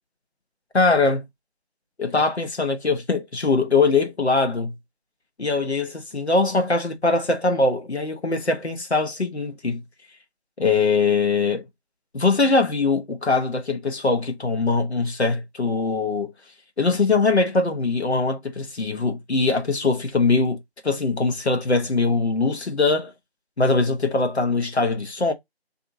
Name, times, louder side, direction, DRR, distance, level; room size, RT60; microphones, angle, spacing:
voice 1, 0.7-1.2 2.0-4.7 5.4-9.8 10.6-11.6 12.1-16.3 16.8-20.6 20.8-23.1 23.6-25.3, left 3 dB, 80° left, 1.0 m, -22 dB
2.6 x 2.5 x 2.6 m
figure-of-eight pair, 175°, 32 cm